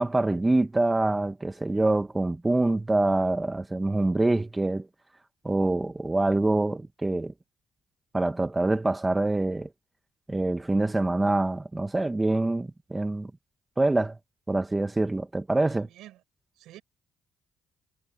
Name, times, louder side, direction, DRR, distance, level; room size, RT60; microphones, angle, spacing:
voice 1, 0.0-4.9 5.4-7.3 8.1-9.7 10.3-13.3 13.8-14.2 14.5-15.9, right 2 dB, 15° right, 1.5 m, -25 dB
voice 2, 15.6-16.2 16.5-16.8, right 14 dB, 85° right, 7.3 m, -49 dB
cardioid pair, 95°, 0 cm